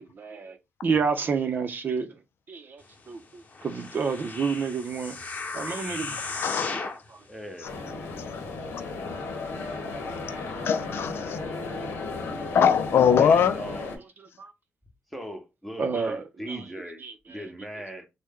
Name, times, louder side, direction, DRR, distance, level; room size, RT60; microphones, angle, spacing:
voice 1, 0.0-2.2 2.5-5.2 5.5-6.3 7.1-7.2 8.4-8.6 10.1-10.7 14.2-14.5 15.8-16.6 17.0-17.4, right 5 dB, 55° right, 0.6 m, -30 dB
sound 1, 3.5-7.1 7.7-7.8, left 3 dB, 45° left, 1.0 m, -35 dB
voice 2, 6.1-6.8 7.6-7.8 8.3-8.4 10.6-11.4 12.2-13.8, left 7 dB, 75° left, 0.4 m, -23 dB
voice 3, 7.3-7.8 13.0-14.0 15.1-18.1, equal, ahead, 0.9 m, -39 dB
sound 2, 7.6-14.0, left 3 dB, 90° left, 0.8 m, -35 dB
3.1 x 2.1 x 3.5 m
cardioid pair, 70°, 4 cm